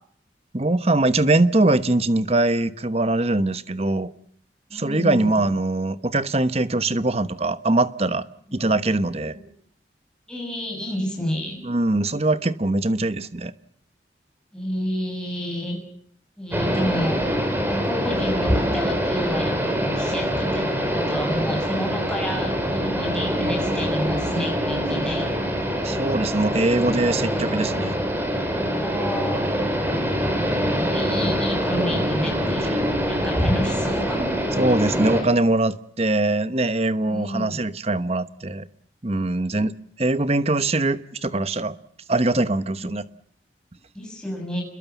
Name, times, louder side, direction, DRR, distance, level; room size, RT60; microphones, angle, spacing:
voice 1, 0.5-4.1 4.7-8.2 8.5-9.3 11.6-13.5 25.8-28.0 34.6-38.7 39.0-39.7 40.0-41.8 42.1-43.1, right 2 dB, 35° right, 1.0 m, -22 dB
voice 2, 4.7-5.4 10.3-11.6 14.5-15.8 16.4-17.2 17.6-25.3 28.7-29.4 30.7-32.8 33.1-34.3 37.1-37.6 42.8-42.9 43.9-44.6, equal, 5° left, 6.9 m, -30 dB
sound 1, 16.5-35.2, equal, 10° right, 5.5 m, -24 dB
29.0 x 22.0 x 7.2 m
head